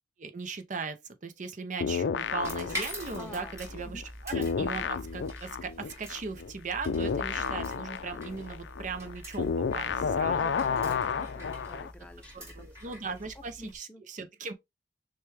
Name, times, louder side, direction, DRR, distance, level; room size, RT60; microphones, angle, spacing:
voice 1, 0.2-10.4 12.5-14.5, right 4 dB, 45° right, 0.6 m, -38 dB
sound 1, 1.8-4.0 4.3-11.9, left 6 dB, 85° left, 0.4 m, -31 dB
sound 2, 2.4-13.8, equal, 15° right, 2.6 m, -44 dB
voice 2, 3.1-4.0 10.3-14.0, equal, 5° left, 0.5 m, -49 dB
6.5 x 2.2 x 3.2 m
head